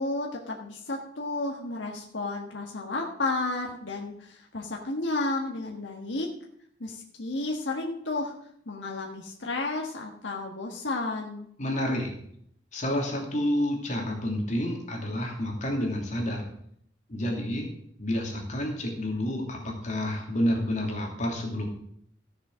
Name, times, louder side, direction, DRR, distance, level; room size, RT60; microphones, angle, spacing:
voice 1, 0.0-6.3 6.8-8.3 8.7-11.5, left 2 dB, 75° left, 0 dB, 1.5 m, -32 dB
voice 2, 11.6-12.1 12.7-16.5 17.1-17.7 18.0-21.7, left 1 dB, 40° left, 0 dB, 2.8 m, -29 dB
14.5 x 6.7 x 6.3 m, 0.69 s
head